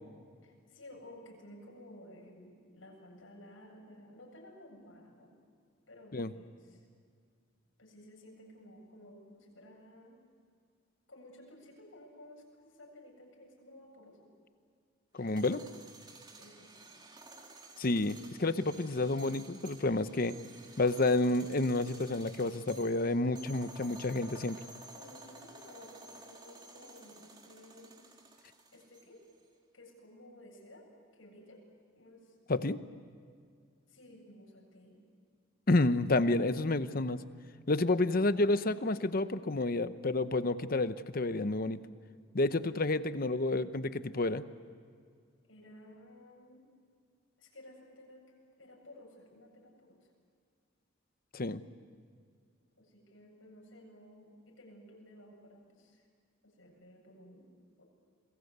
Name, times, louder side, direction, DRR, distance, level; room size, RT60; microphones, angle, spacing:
voice 1, 0.4-5.3 5.9-6.9 7.8-10.1 11.1-14.3 16.4-16.9 24.9-28.0 28.7-29.2 29.7-30.9 31.1-31.6 31.9-32.8 33.9-35.0 45.5-46.6 47.4-48.2 48.6-50.0 52.8-56.0 56.4-57.5 57.8-57.9, left 1 dB, 85° left, 0 dB, 7.8 m, -55 dB
voice 2, 15.1-15.6 17.8-20.3 20.8-24.6 32.5-32.8 35.7-37.2 37.7-41.8 42.3-44.4 51.3-51.6, left 2 dB, 45° left, 12 dB, 0.9 m, -30 dB
sound 1, 15.2-29.3, right 2 dB, 20° right, 2.4 m, -53 dB
28.5 x 22.0 x 8.2 m, 2.1 s
head